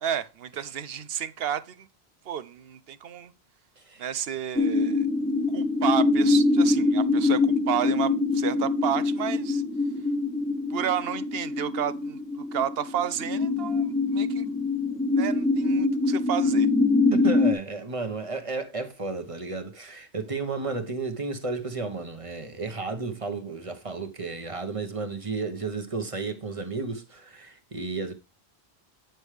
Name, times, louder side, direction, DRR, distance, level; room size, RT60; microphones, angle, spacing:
voice 1, 0.0-1.9 2.3-3.3 4.0-5.1 5.5-9.6 10.7-14.5 15.2-16.7, right 9 dB, 70° right, 0.8 m, -31 dB
sound 1, 4.6-17.5, left 3 dB, 5° left, 1.0 m, -24 dB
voice 2, 17.1-28.1, right 4 dB, 35° right, 1.2 m, -33 dB
9.1 x 6.3 x 3.3 m
omnidirectional pair, 1.1 m